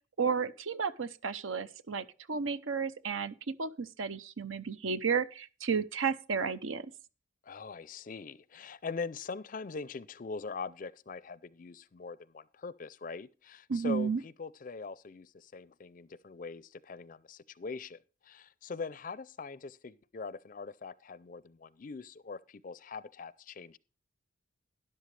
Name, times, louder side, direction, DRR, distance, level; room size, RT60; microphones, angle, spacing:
voice 1, 0.2-6.9 13.7-14.2, right 5 dB, 80° right, 0.7 m, -33 dB
voice 2, 7.4-23.8, left 4 dB, 40° left, 0.4 m, -42 dB
12.5 x 11.0 x 3.2 m
head